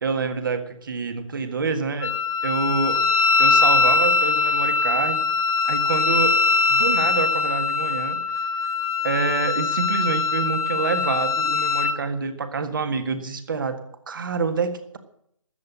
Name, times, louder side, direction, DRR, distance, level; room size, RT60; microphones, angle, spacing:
voice 1, 0.0-2.1 2.4-3.0 3.4-5.3 5.7-6.4 6.7-8.2 9.0-13.8 14.1-15.0, right 5 dB, 40° right, 9 dB, 1.7 m, -27 dB
Wind instrument woodwind instrument, 2.0-12.0, left 4 dB, 85° left, 2.3 m, -22 dB
13.0 x 8.2 x 9.7 m, 0.70 s
figure-of-eight pair, 150°, 17 cm